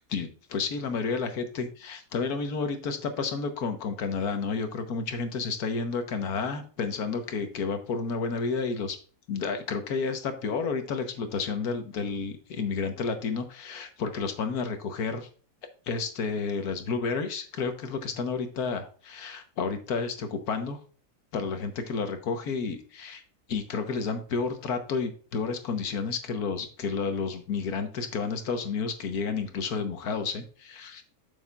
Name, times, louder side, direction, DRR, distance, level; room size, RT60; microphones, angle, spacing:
voice 1, 0.1-9.0 9.3-15.3 15.9-20.8 21.3-23.2 23.5-31.0, left 5 dB, 90° left, 7 dB, 1.6 m, -31 dB
9.4 x 7.1 x 2.4 m, 0.40 s
omnidirectional pair, 1.6 m